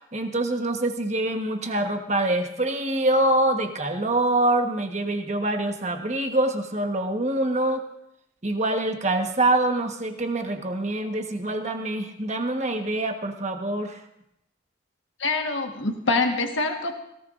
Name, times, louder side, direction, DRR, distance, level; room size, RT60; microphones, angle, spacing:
voice 1, 0.1-7.8 8.4-14.0, right 1 dB, 35° right, 5 dB, 1.3 m, -25 dB
voice 2, 15.2-16.9, left 3 dB, 80° left, 3 dB, 1.4 m, -25 dB
17.5 x 17.5 x 2.6 m, 0.81 s
head